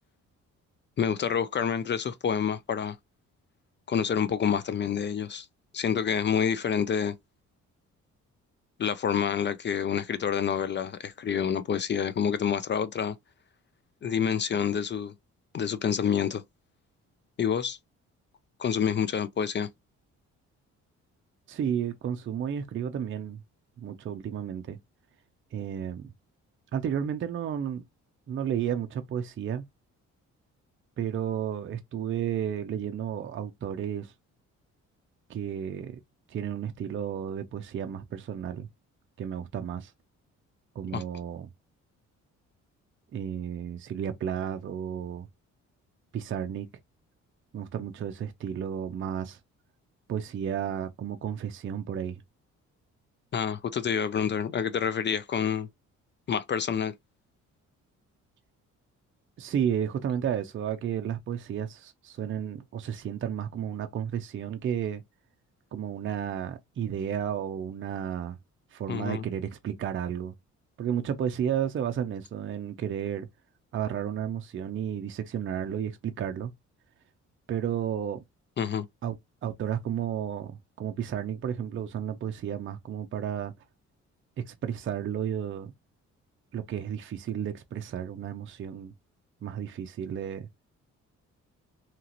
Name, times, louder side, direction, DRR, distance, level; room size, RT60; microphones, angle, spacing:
voice 1, 1.0-3.0 3.9-5.5 5.7-7.2 8.8-13.2 14.0-15.1 15.5-16.4 17.4-17.8 18.6-19.7 40.9-41.0 53.3-55.7 56.3-56.9 68.9-69.2 78.6-78.9, left 7 dB, 40° left, 0.4 m, -28 dB
voice 2, 21.5-23.4 23.8-24.8 25.5-26.1 26.7-27.8 28.3-29.7 31.0-34.1 35.3-36.0 36.3-38.7 39.2-39.9 40.8-41.5 43.1-45.3 46.1-46.7 47.5-49.4 50.1-52.2 59.4-65.0 65.7-68.4 68.7-70.3 70.8-73.3 73.7-76.5 77.5-78.2 79.0-79.2 79.4-83.5 84.4-85.7 86.5-88.9 89.4-90.5, right 9 dB, 40° right, 0.5 m, -32 dB
2.9 x 2.4 x 2.9 m
cardioid pair, 90°, 30 cm